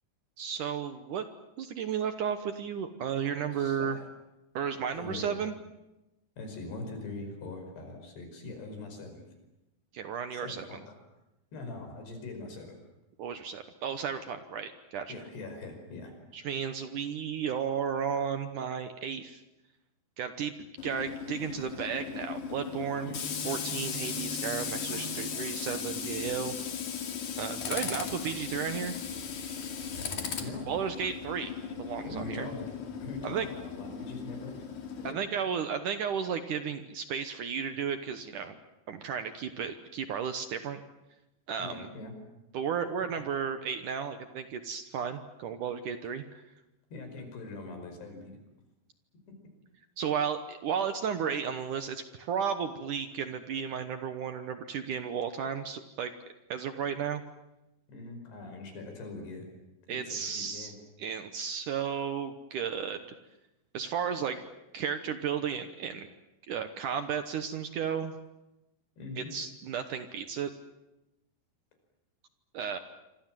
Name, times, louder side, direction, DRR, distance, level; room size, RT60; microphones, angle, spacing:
voice 1, 0.4-1.3 1.6-4.0 4.5-5.6 9.9-10.8 13.2-15.2 16.3-19.4 20.2-20.5 20.8-23.1 23.5-26.5 27.4-29.0 30.7-31.5 31.8-32.5 33.2-33.5 35.0-38.6 38.9-40.8 41.5-41.9 42.5-46.4 50.0-56.1 56.5-57.2 59.9-63.0 63.7-64.4 64.7-66.1 66.5-68.2 69.2-70.5 72.5-72.8, right 7 dB, 65° right, 9 dB, 2.2 m, -33 dB
voice 2, 3.5-4.1 4.9-5.4 6.4-9.2 10.3-11.0 11.5-12.8 15.1-16.1 23.1-23.2 30.4-30.7 32.1-32.7 33.0-34.6 35.1-35.2 41.6-42.1 43.2-43.3 46.9-48.4 49.3-49.4 57.9-59.4 59.9-60.8 69.0-69.3, left 3 dB, 80° left, 5 dB, 7.3 m, -42 dB
Tools, 20.8-35.1, left 6 dB, 50° left, 3.7 m, -37 dB
27.0 x 25.5 x 7.6 m, 0.95 s
omnidirectional pair, 4.7 m